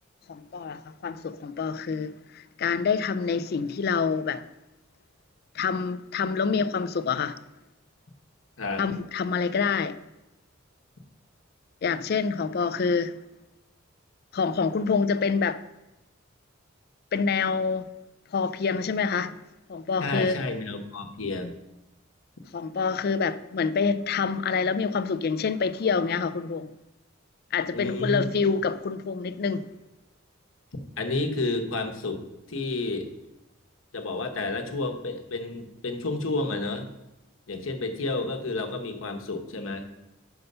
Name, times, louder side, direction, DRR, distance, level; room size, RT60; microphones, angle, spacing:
voice 1, 0.3-4.5 5.5-7.4 8.8-10.0 11.8-13.2 14.3-15.6 17.1-17.9 18.3-19.4 19.7-20.4 22.5-26.7 27.5-29.7, left 5 dB, 50° left, 0.4 m, -27 dB
voice 2, 20.0-21.5 27.7-28.3 31.0-32.2 32.5-33.1 33.9-36.9 37.5-39.9, left 2 dB, 85° left, 1.0 m, -30 dB
5.7 x 5.4 x 6.6 m
head